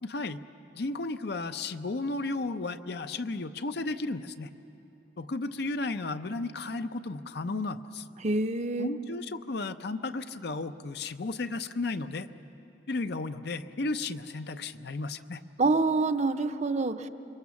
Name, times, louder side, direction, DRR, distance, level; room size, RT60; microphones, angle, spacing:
voice 1, 0.0-0.4 0.7-4.5 5.2-8.0 8.8-12.3 12.9-15.4, left 3 dB, 65° left, 10 dB, 0.7 m, -34 dB
voice 2, 8.2-8.9 15.6-17.1, right 3 dB, 40° right, 9 dB, 0.7 m, -26 dB
26.0 x 23.5 x 7.1 m, 2.9 s
head